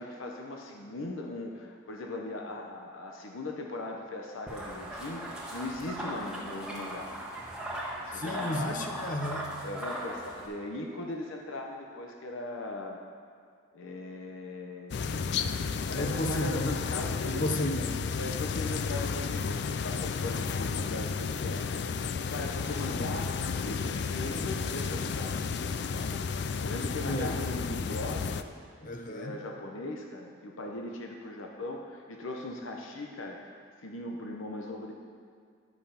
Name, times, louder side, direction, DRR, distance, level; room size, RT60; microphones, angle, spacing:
voice 1, 0.0-7.1 8.0-8.8 9.6-13.0 13.7-15.3 15.9-17.5 18.2-21.6 22.0-25.3 25.6-28.4 29.1-33.5 33.8-34.9, left 2 dB, 85° left, 1 dB, 0.8 m, -39 dB
sound 1, 4.5-10.5, right 1 dB, 5° right, 1.2 m, -38 dB
voice 2, 8.1-9.5 15.9-16.9 17.2-18.0 27.1-27.4 28.8-29.4, left 1 dB, 40° left, 4 dB, 0.8 m, -33 dB
sound 2, 14.9-28.4, left 5 dB, 55° left, 0.3 m, -32 dB
10.5 x 5.5 x 5.8 m, 2.1 s
head